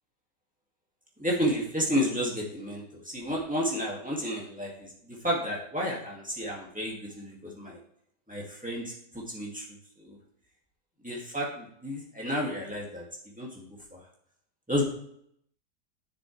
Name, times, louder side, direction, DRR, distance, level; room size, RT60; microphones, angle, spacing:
voice 1, 1.2-7.8 8.3-9.7 10.0-10.2 11.0-13.1 13.4-14.0 14.7-14.8, equal, 5° right, -4 dB, 2.2 m, -31 dB
10.0 x 6.8 x 3.3 m, 0.70 s
omnidirectional pair, 1.7 m